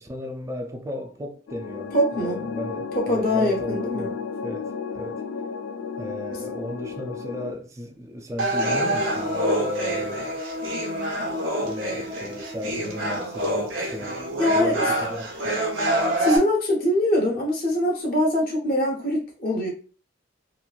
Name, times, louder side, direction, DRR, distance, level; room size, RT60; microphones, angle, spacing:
voice 1, 0.0-5.2 6.0-10.2 11.2-14.2 14.5-15.6, left 1 dB, 15° right, 0.3 m, -35 dB
sound 1, 1.5-7.5, left 5 dB, 75° left, 0.3 m, -33 dB
voice 2, 1.9-2.4 2.9-4.1 14.4-14.8 16.2-19.7, left 1 dB, 50° left, 0.9 m, -23 dB
sound 2, 8.4-16.4, right 1 dB, 90° right, 0.8 m, -26 dB
3.0 x 2.5 x 2.3 m
head